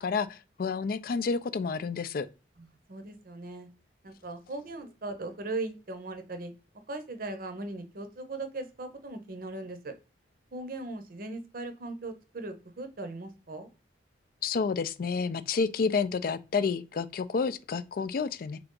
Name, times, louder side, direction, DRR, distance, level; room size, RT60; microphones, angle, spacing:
voice 1, 0.0-2.3 14.4-18.6, left 5 dB, 50° left, 0.3 m, -30 dB
voice 2, 2.6-3.7 4.0-6.5 6.9-9.9 10.5-13.7, right 2 dB, 50° right, 0.7 m, -39 dB
3.8 x 3.4 x 3.7 m
head